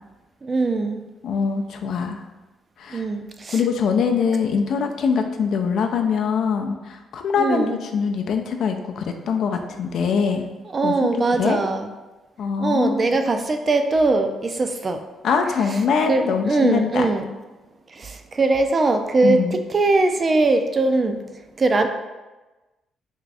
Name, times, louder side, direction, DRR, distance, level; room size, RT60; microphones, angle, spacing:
voice 1, 0.4-1.0 2.9-3.6 7.4-7.8 10.7-11.9 12.6-15.0 16.1-17.3 18.0-21.2 21.6-21.9, right 3 dB, 35° right, 6 dB, 0.3 m, -21 dB
voice 2, 1.2-2.2 2.8-3.0 3.5-10.5 10.8-11.6 12.4-13.0 15.2-17.1 19.2-19.6, left 6 dB, 70° left, 4 dB, 0.4 m, -23 dB
3.5 x 2.5 x 3.3 m, 1.1 s
cardioid pair, 90°, 0 cm